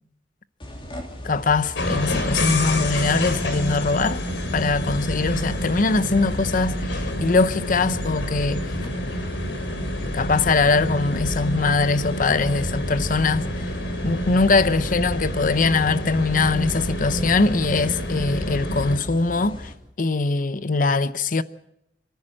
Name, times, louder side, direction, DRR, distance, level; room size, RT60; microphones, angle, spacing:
sound 1, 0.6-19.7, left 1 dB, 30° left, 3.2 m, -38 dB
voice 1, 1.2-4.2 4.5-8.8 10.1-13.6 14.0-19.7 20.0-21.4, left 3 dB, 50° left, 0.8 m, -22 dB
sound 2, 1.8-19.0, left 1 dB, 85° left, 3.7 m, -28 dB
27.0 x 15.5 x 7.7 m
head